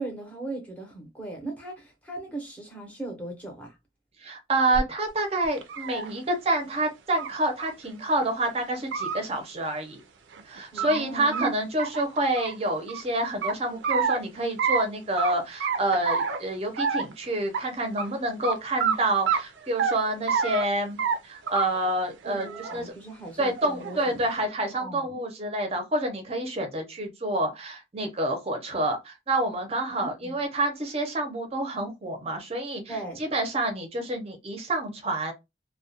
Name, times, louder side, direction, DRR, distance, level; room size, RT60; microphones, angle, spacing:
voice 1, 0.0-3.8 10.7-11.5 22.2-24.2 24.7-25.2 29.9-30.4 32.9-33.2, right 3 dB, 10° left, 0.7 m, -37 dB
voice 2, 4.2-10.0 10.4-22.9 23.4-35.3, right 1 dB, 30° right, 0.6 m, -28 dB
sound 1, 4.7-4.8 5.4-6.1 7.2-7.3 7.6-7.7 8.1-8.2 8.7-9.2 10.3-11.0 11.3-11.5 11.8-13.0 13.4-14.2 14.6-14.8 15.2-15.3 15.6-16.4 16.8-17.1 17.5-17.6 18.0-18.1 18.4-18.5 18.8-19.0 19.3-19.9 20.3-20.6 21.0-21.2 21.5-21.9 22.2-22.8 23.6-24.1, right 6 dB, 75° right, 0.4 m, -27 dB
2.3 x 2.1 x 2.7 m
head